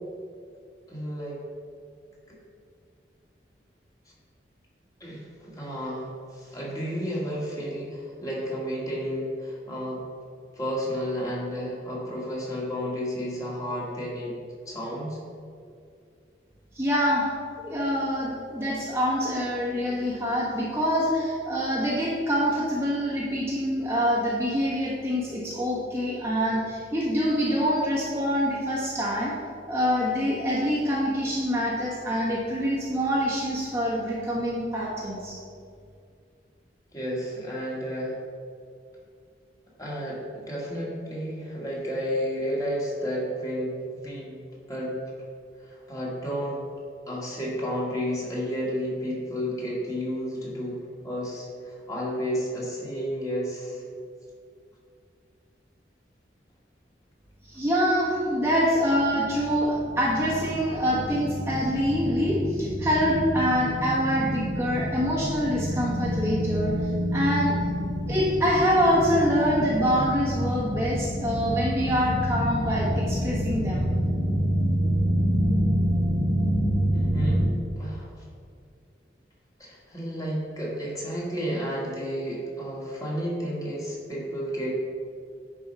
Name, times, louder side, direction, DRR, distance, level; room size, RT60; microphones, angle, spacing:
voice 1, 0.9-1.4 2.3-2.4 5.0-10.0 10.5-14.3 14.7-15.2 36.9-38.2 39.8-44.4 44.7-45.1 45.6-46.6 47.1-53.8 76.9-78.2 79.6-84.7, equal, 20° left, -5 dB, 2.0 m, -32 dB
voice 2, 16.7-17.3 17.6-29.3 29.7-35.4 57.5-66.7 67.1-67.5 68.1-73.9, equal, 15° right, -6 dB, 1.3 m, -25 dB
sound 1, 58.5-77.5, equal, 85° left, 1.4 m, -27 dB
10.5 x 4.8 x 5.4 m, 2.3 s
head